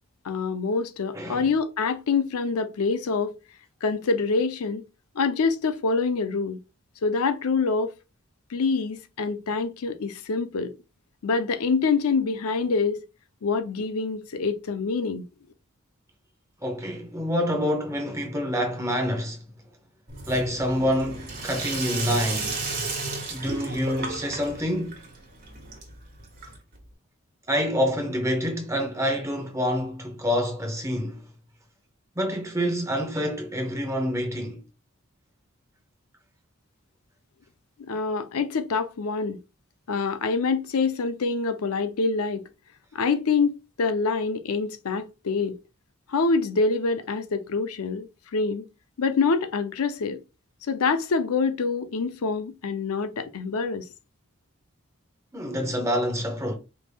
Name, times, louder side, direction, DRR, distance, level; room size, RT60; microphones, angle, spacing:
voice 1, 0.2-3.3 3.8-4.8 5.2-6.6 7.0-7.9 8.5-10.7 11.2-13.0 13.4-15.3 37.9-39.4 39.9-42.4 42.9-45.6 46.1-48.6 49.0-50.2 50.7-53.9, left 4 dB, 80° left, 0.5 m, -26 dB
voice 2, 1.1-1.5 16.6-19.4 20.3-23.0 23.3-25.1 27.5-31.2 32.2-34.6 55.3-56.6, equal, 15° right, 0.9 m, -27 dB
Sink (filling or washing), 20.1-26.9, right 3 dB, 40° right, 1.4 m, -34 dB
5.1 x 3.4 x 2.2 m
head